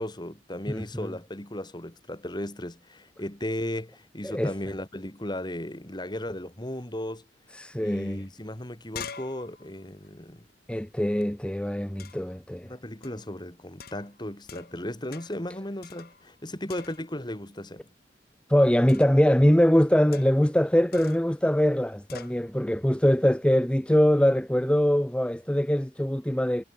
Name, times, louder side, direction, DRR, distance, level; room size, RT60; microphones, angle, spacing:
voice 1, 0.0-7.3 7.8-10.5 12.6-17.8, left 1 dB, 25° left, 2.5 m, -36 dB
voice 2, 0.7-1.1 4.2-4.5 7.5-8.2 10.7-12.7 18.5-26.6, equal, 5° left, 0.7 m, -23 dB
sound 1, 8.2-8.3 8.5-11.3 12.0-12.4 13.0-13.3 13.8-14.8 15.1-15.5 15.8-16.4 16.7-17.3 18.9-19.2 20.1-20.5 20.9-21.3 22.1-22.4, left 6 dB, 55° left, 1.9 m, -45 dB
head